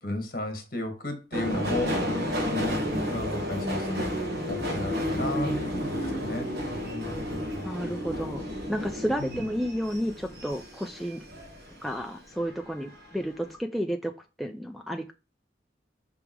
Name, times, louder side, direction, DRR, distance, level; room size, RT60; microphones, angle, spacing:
voice 1, 0.0-2.0 2.5-2.7 3.1-6.5 9.2-9.5, left 2 dB, 50° left, 1.6 m, -34 dB
Subway metro underground, 1.3-12.0 12.4-13.1 13.4-13.5, equal, 60° right, 1.6 m, -31 dB
voice 2, 7.6-8.4 8.7-11.2 11.8-14.1 14.4-15.1, equal, ahead, 0.4 m, -31 dB
6.0 x 3.6 x 4.6 m
head